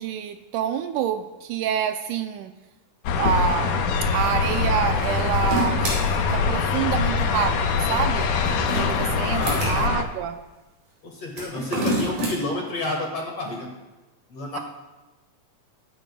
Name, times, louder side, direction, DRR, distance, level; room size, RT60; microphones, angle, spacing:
voice 1, 0.0-2.5 3.1-8.3 8.8-10.4 14.5-14.6, right 9 dB, 85° right, 7 dB, 1.8 m, -27 dB
sound 1, 3.0-10.0, left 5 dB, 75° left, 2.2 m, -23 dB
sound 2, 5.0-6.0 8.2-9.7 11.3-12.3, right 1 dB, 65° right, 5.4 m, -27 dB
voice 2, 9.3-9.9 11.0-13.7 14.3-14.6, left 2 dB, 50° left, 0 dB, 2.4 m, -30 dB
21.0 x 10.0 x 2.3 m, 1.2 s
omnidirectional pair, 4.1 m